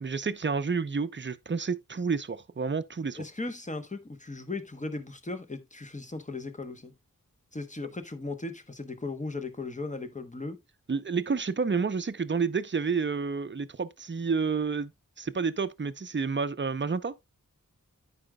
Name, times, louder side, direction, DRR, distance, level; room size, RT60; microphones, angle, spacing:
voice 1, 0.0-3.2 10.9-14.9 15.2-17.1, right 5 dB, 35° right, 0.6 m, -30 dB
voice 2, 3.1-6.9 7.5-10.6, left 3 dB, 20° left, 1.0 m, -37 dB
14.0 x 4.9 x 2.2 m
wide cardioid pair, 70°, 34 cm